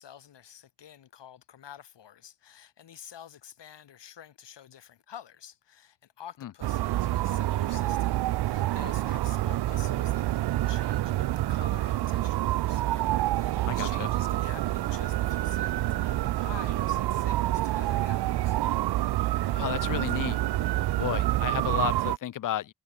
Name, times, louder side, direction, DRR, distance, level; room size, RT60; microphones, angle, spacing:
voice 1, 0.0-18.6, left 9 dB, 75° left, 3.0 m, -49 dB
sound 1, 6.6-22.2, right 15 dB, 65° right, 0.5 m, -27 dB
voice 2, 13.6-14.1 19.5-20.4 20.9-22.7, left 12 dB, 50° left, 0.6 m, -32 dB
cardioid pair, 65°, 42 cm